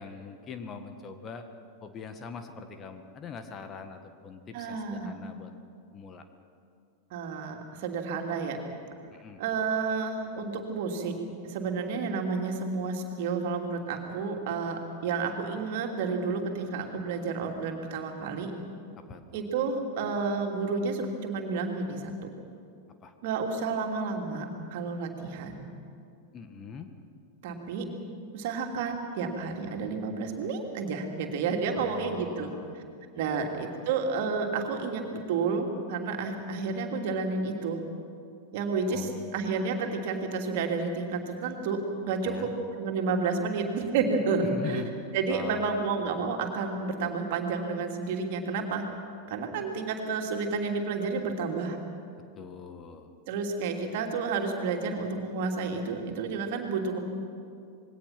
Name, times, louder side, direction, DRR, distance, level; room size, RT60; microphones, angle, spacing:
voice 1, 0.0-1.5 1.8-5.5 5.9-6.3 9.1-9.4 19.0-19.5 23.0-23.1 26.3-26.9 31.7-32.8 33.2-33.5 38.9-39.3 42.2-42.5 44.5-44.9 45.3-45.8 52.3-53.1, left 5 dB, 25° left, 7 dB, 1.7 m, -43 dB
voice 2, 4.5-5.1 7.1-8.6 9.4-11.1 11.4-18.5 19.3-22.1 23.2-24.5 24.7-25.7 27.4-27.8 28.3-32.8 33.1-37.8 38.5-44.8 45.1-48.8 49.3-51.8 53.3-57.0, right 4 dB, 50° right, 3 dB, 2.9 m, -30 dB
26.5 x 21.0 x 6.0 m, 2.5 s
figure-of-eight pair, 90°, 0 cm